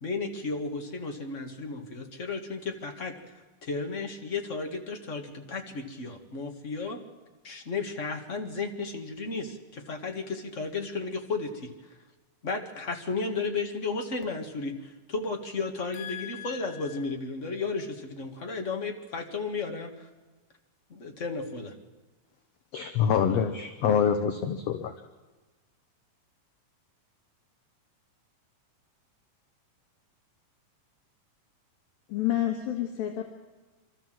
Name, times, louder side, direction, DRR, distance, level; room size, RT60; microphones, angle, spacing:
voice 1, 0.0-3.1 3.6-7.0 7.4-11.7 12.4-20.1 20.9-21.7, left 4 dB, 35° left, 3 dB, 1.3 m, -34 dB
voice 2, 15.9-16.9 32.1-33.2, left 12 dB, 90° left, 2 dB, 3.2 m, -31 dB
voice 3, 22.7-24.9, left 7 dB, 65° left, 7 dB, 1.7 m, -25 dB
25.0 x 13.5 x 7.6 m, 1.3 s
omnidirectional pair, 4.0 m